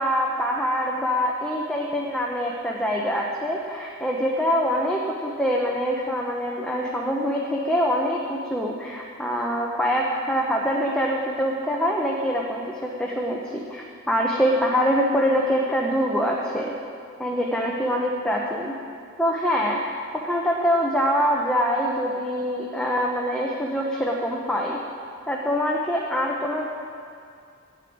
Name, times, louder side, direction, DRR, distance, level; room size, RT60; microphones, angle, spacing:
voice 1, 0.0-16.7 17.2-18.8 19.2-20.0 20.2-24.8 25.3-26.7, equal, 5° left, -3 dB, 0.9 m, -24 dB
9.9 x 7.8 x 9.3 m, 2.4 s
head